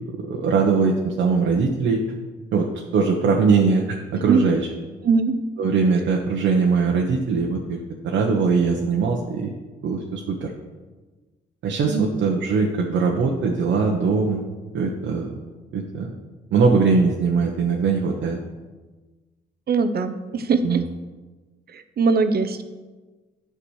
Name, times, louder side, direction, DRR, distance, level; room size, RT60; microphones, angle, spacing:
voice 1, 0.2-2.0 2.5-2.7 2.9-4.7 5.6-7.8 8.0-9.5 9.8-10.5 11.6-14.4 14.7-15.4 15.7-16.1 16.5-18.4 20.6-20.8, right 4 dB, 70° right, 0 dB, 1.1 m, -21 dB
voice 2, 5.0-5.4 11.9-12.1 19.7-20.8 21.7-22.6, right 4 dB, 50° right, 10 dB, 0.8 m, -21 dB
10.0 x 4.9 x 6.4 m, 1.3 s
cardioid pair, 90°, 20 cm